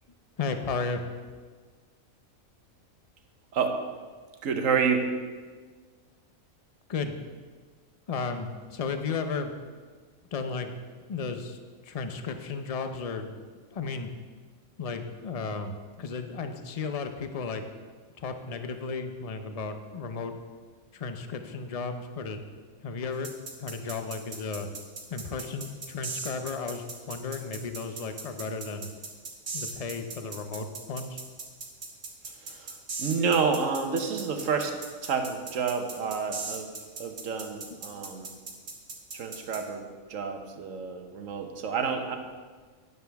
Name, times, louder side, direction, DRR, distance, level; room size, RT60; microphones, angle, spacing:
voice 1, 0.4-1.0 6.9-7.1 8.1-9.5 10.3-10.7 11.1-11.6 11.8-14.1 14.8-17.6 18.2-20.4 20.9-22.4 22.8-23.3 23.6-24.7 25.1-28.9 29.5-31.2 37.7-38.0, left 4 dB, 40° left, 7 dB, 0.6 m, -34 dB
voice 2, 4.4-5.1 32.4-36.7 37.0-38.3 39.1-42.2, right 5 dB, 65° right, 5 dB, 1.3 m, -29 dB
sound 1, 23.2-39.6, right 4 dB, 50° right, 1.5 m, -38 dB
12.0 x 9.4 x 3.5 m, 1.5 s
omnidirectional pair, 1.5 m